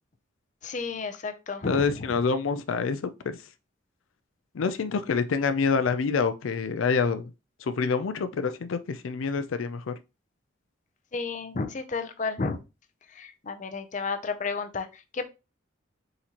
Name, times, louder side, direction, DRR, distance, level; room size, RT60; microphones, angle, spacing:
voice 1, 0.6-2.0 11.1-12.6 13.1-15.3, left 4 dB, 40° left, 0.5 m, -32 dB
voice 2, 1.6-3.4 4.5-7.3 7.6-9.9, left 5 dB, 85° left, 0.4 m, -27 dB
4.2 x 3.8 x 2.9 m
head